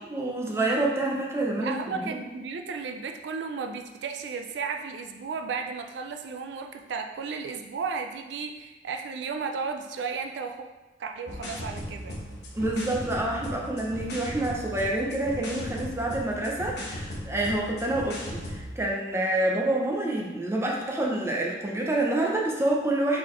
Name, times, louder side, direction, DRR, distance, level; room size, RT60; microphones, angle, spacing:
voice 1, 0.0-2.2 12.5-23.2, right 1 dB, 15° right, -2 dB, 0.6 m, -27 dB
voice 2, 1.6-10.7 11.0-12.2, right 5 dB, 85° right, 4 dB, 0.4 m, -34 dB
sound 1, 11.3-18.7, left 1 dB, 70° left, 1.0 m, -37 dB
4.1 x 3.8 x 3.1 m, 1.1 s
head